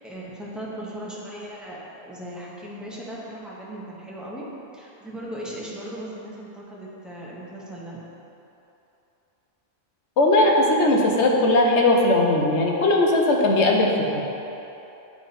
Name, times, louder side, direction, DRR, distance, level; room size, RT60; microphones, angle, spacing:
voice 1, 0.0-4.4 4.7-8.0, right 1 dB, ahead, -6 dB, 1.0 m, -37 dB
voice 2, 10.2-13.9, left 2 dB, 90° left, 0 dB, 1.1 m, -18 dB
9.5 x 3.7 x 4.2 m, 2.9 s
omnidirectional pair, 1.1 m